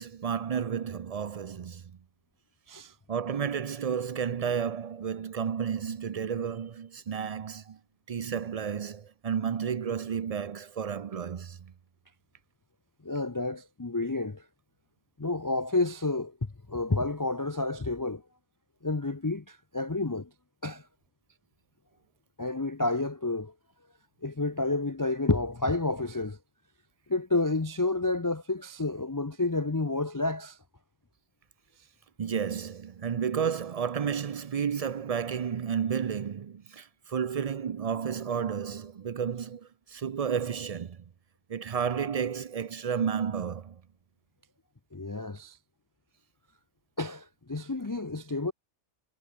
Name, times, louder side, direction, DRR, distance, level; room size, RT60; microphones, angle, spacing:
voice 1, 0.0-1.8 3.1-7.8 8.1-11.6 32.2-41.0 41.5-43.8, right 7 dB, 70° right, 0.3 m, -32 dB
voice 2, 13.0-14.4 15.2-16.3 16.7-18.2 18.8-20.3 20.6-20.8 22.4-23.5 24.2-26.4 27.1-30.6 44.9-45.6 47.0-48.5, left 2 dB, 20° left, 0.5 m, -30 dB
omnidirectional pair, 1.4 m